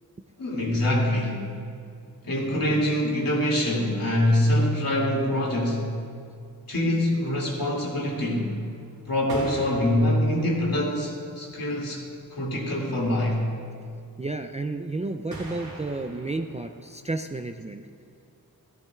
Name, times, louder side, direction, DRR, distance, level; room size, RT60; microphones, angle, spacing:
voice 1, 0.4-1.4 2.2-5.9 6.7-8.5 9.1-12.0 12.3-13.4, left 1 dB, 65° left, -3 dB, 2.5 m, -24 dB
sound 1, 8.1-10.9 11.5-11.6 11.8-11.9 12.2-12.3 12.5-13.0 15.3-17.2, right 1 dB, 70° right, 2.2 m, -43 dB
voice 2, 14.2-17.8, right 2 dB, 20° right, 5 dB, 0.3 m, -32 dB
13.5 x 13.0 x 2.3 m, 2.4 s
wide cardioid pair, 85°, 38 cm